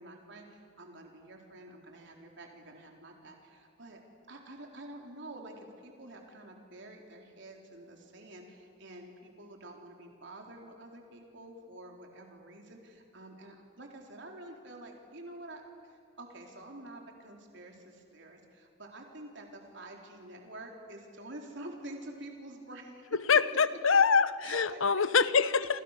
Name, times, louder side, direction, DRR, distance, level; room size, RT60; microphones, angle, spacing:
voice 1, 0.0-4.0 4.3-23.4 24.4-25.2, right 1 dB, 60° right, 1 dB, 4.1 m, -48 dB
voice 2, 23.3-25.8, left 5 dB, 80° left, 15 dB, 1.0 m, -25 dB
28.0 x 27.0 x 6.7 m, 2.5 s
head